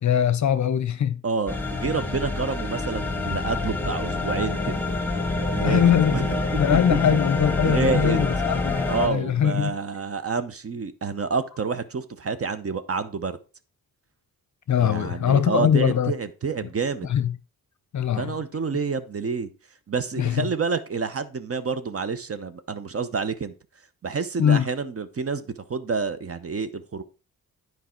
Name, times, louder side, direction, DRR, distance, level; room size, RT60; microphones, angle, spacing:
voice 1, 0.0-1.2 5.6-9.7 14.7-16.1 17.1-17.3 17.9-18.3 20.2-20.5 24.4-24.7, left 8 dB, 50° left, 0.7 m, -22 dB
voice 2, 1.2-4.8 5.4-6.4 6.9-7.0 7.6-8.2 8.9-13.4 14.8-17.1 18.2-19.5 19.9-23.5 24.0-25.4 25.7-27.0, right 5 dB, 35° right, 0.9 m, -28 dB
sound 1, 1.5-9.1, left 3 dB, 5° left, 1.7 m, -26 dB
9.3 x 4.8 x 4.4 m
cardioid pair, 65°, 38 cm